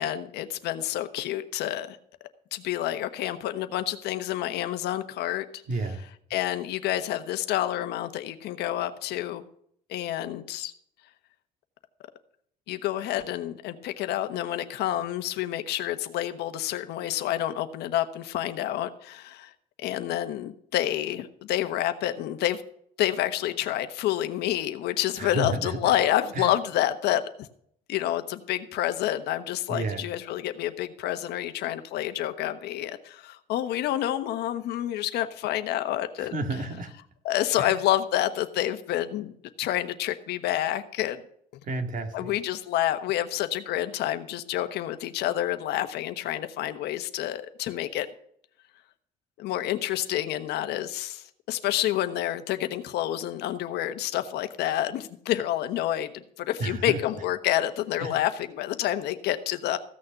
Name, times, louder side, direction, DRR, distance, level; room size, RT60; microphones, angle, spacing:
voice 1, 0.0-2.0 2.5-5.5 6.3-9.4 9.9-10.7 12.7-19.5 19.8-22.6 23.0-27.2 27.9-36.3 37.2-39.3 39.6-41.2 42.1-48.1 49.4-59.8, left 13 dB, 80° left, 9 dB, 1.2 m, -28 dB
voice 2, 5.7-6.0 25.2-25.8 26.4-26.5 29.7-30.1 36.2-36.9 37.6-37.7 41.6-42.3 56.6-57.0 58.0-58.2, right 2 dB, 50° right, 5 dB, 2.2 m, -31 dB
15.5 x 6.5 x 5.9 m, 0.66 s
cardioid pair, 110°, 17 cm